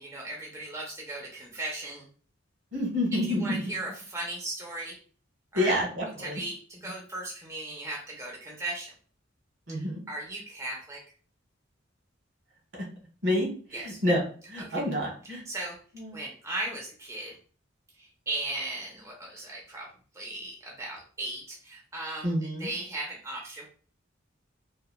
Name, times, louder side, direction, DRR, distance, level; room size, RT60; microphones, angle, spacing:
voice 1, 0.0-2.1 3.3-5.0 5.5-5.8 6.2-8.9 9.7-11.0 13.7-14.0 14.6-14.8 15.5-15.8 16.1-17.4 18.0-19.9 20.1-22.3 22.6-23.7, right 2 dB, 15° right, -2 dB, 0.5 m, -37 dB
voice 2, 2.7-3.6 5.5-6.4 9.7-10.0 12.7-12.8 13.2-15.4 15.9-16.2 22.2-22.7, left 1 dB, 70° right, -1 dB, 1.1 m, -28 dB
2.9 x 2.2 x 2.2 m, 0.43 s
head